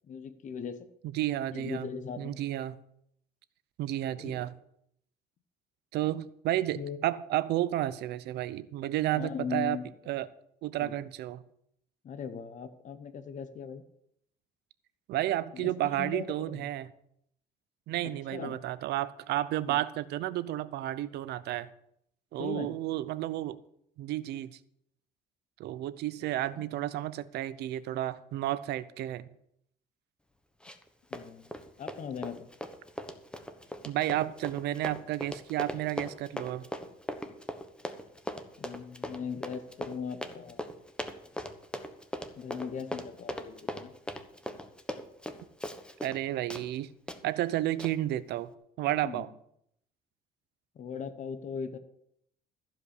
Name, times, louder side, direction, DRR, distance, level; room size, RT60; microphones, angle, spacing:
voice 1, 0.1-0.8 1.5-2.4 4.2-4.5 6.5-7.0 9.1-10.1 10.8-10.9 12.0-13.8 15.5-16.6 18.3-18.6 19.6-19.8 22.4-22.7 26.5-26.6 31.1-31.5 31.8-32.5 38.6-40.7 42.4-43.9 49.0-49.3 50.7-51.8, left 6 dB, 45° left, 1.1 m, -39 dB
voice 2, 1.1-1.9 2.2-2.8 3.8-4.5 5.9-9.8 10.1-10.3 10.6-11.4 15.1-16.9 17.9-21.7 22.3-23.6 24.0-24.6 25.6-29.3 33.8-36.6 46.0-46.9 47.2-48.5 48.8-49.3, right 14 dB, 75° right, 0.7 m, -32 dB
Run, 30.6-30.9 31.1-46.2 46.5-46.7 47.1-47.2 47.8-47.9, left 1 dB, 5° left, 1.1 m, -39 dB
15.0 x 5.2 x 8.3 m
cardioid pair, 110°, 17 cm